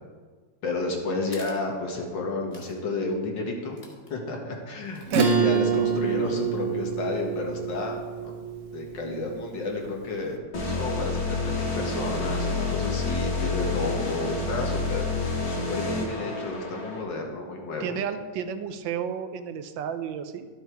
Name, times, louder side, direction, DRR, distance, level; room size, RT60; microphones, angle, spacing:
voice 1, 0.6-3.8 4.1-8.0 8.2-8.4 8.7-10.4 10.8-15.1 15.5-18.0, left 3 dB, 75° left, 1 dB, 2.1 m, -31 dB
sound 1, 1.3-1.6 2.5-2.8 3.1-3.2 3.7-4.1 4.8-6.0, left 1 dB, 25° left, 1.4 m, -49 dB
Acoustic guitar / Strum, 5.1-10.0, right 6 dB, 50° right, 1.1 m, -27 dB
sound 2, 10.5-17.0, left 3 dB, 90° left, 2.6 m, -28 dB
voice 2, 17.8-20.5, right 8 dB, 85° right, 10 dB, 1.4 m, -32 dB
12.0 x 6.4 x 4.6 m, 1.5 s
omnidirectional pair, 2.0 m